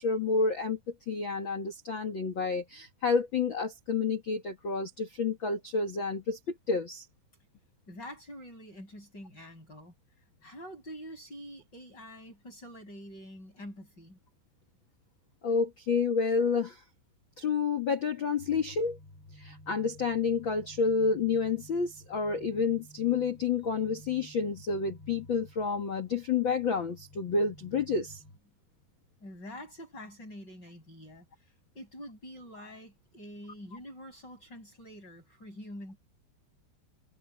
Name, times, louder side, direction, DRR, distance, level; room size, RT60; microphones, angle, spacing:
voice 1, 0.0-7.0 15.4-16.8 17.4-19.0 19.3-28.2, left 5 dB, 50° left, 1.4 m, -29 dB
voice 2, 7.9-9.9 10.4-14.2 29.2-36.0, equal, 25° left, 7.2 m, -46 dB
sound 1, 18.4-28.4, left 1 dB, 85° left, 8.1 m, -52 dB
omnidirectional pair, 4.9 m